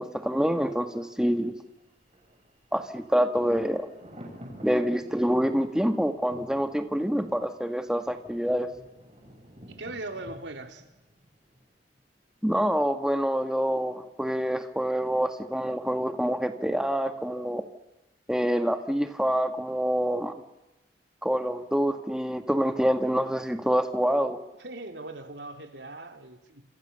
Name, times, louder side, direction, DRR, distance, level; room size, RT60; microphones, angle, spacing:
voice 1, 0.0-1.6 2.7-3.9 4.6-8.7 12.4-17.6 18.3-20.3 21.2-24.4, equal, 5° right, 7 dB, 1.7 m, -26 dB
Thunder, 1.1-12.0 12.3-12.4, equal, 35° right, 7.2 m, -50 dB
voice 2, 9.7-10.8 24.6-26.6, right 2 dB, 90° right, 6 dB, 3.3 m, -40 dB
28.0 x 28.0 x 6.9 m, 0.98 s
head